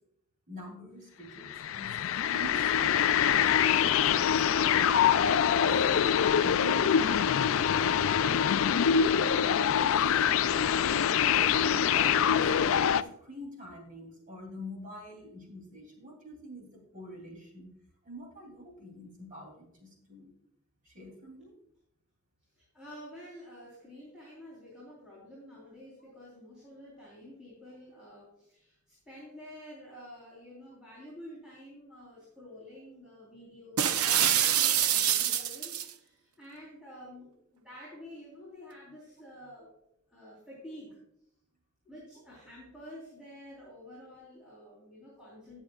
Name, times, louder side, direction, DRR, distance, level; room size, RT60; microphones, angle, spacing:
voice 1, 0.5-3.0 3.4-8.8 9.4-10.7 11.0-17.7 18.0-20.3 20.8-21.6, equal, 35° right, 2 dB, 2.8 m, -46 dB
sound 1, 1.4-13.0, left 8 dB, 60° left, 0.3 m, -25 dB
voice 2, 22.6-39.7 40.1-41.0 41.8-45.6, equal, 5° right, -9 dB, 3.6 m, -49 dB
sound 2, 33.8-35.9, right 10 dB, 75° right, 0.6 m, -25 dB
18.5 x 6.3 x 2.3 m, 0.77 s
head